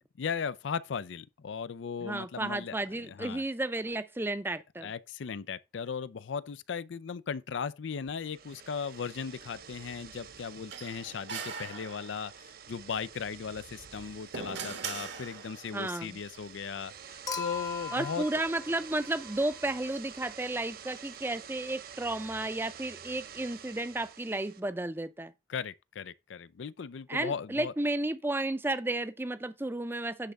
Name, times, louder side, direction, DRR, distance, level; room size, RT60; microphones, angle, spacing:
voice 1, 0.2-2.8 3.0-3.4 4.8-18.3 25.5-27.7, left 6 dB, 90° left, 0.5 m, -37 dB
voice 2, 2.0-4.9 15.7-16.2 17.9-25.3 27.1-30.3, right 2 dB, 10° right, 0.5 m, -33 dB
sound 1, 8.1-24.6, right 7 dB, 55° right, 0.6 m, -49 dB
sound 2, 10.7-12.4 13.8-15.8, right 6 dB, 75° right, 1.4 m, -40 dB
Human group actions / Chink clink / Liquid, 17.3-19.7 21.1-21.2, left 5 dB, 20° left, 0.8 m, -39 dB
10.0 x 3.5 x 5.3 m
head